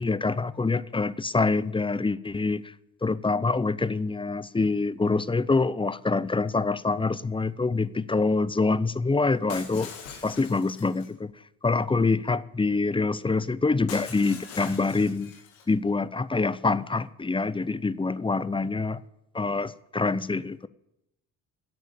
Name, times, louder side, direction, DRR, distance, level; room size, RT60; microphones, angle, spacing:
voice 1, 0.0-2.6 3.0-9.9 10.2-11.3 11.6-15.3 15.7-19.0 19.3-20.7, left 3 dB, 15° left, 0.7 m, -25 dB
Shatter, 9.5-11.1 13.9-15.7, left 6 dB, 80° left, 2.4 m, -42 dB
11.5 x 8.2 x 8.8 m
hypercardioid pair, 50°, 39 cm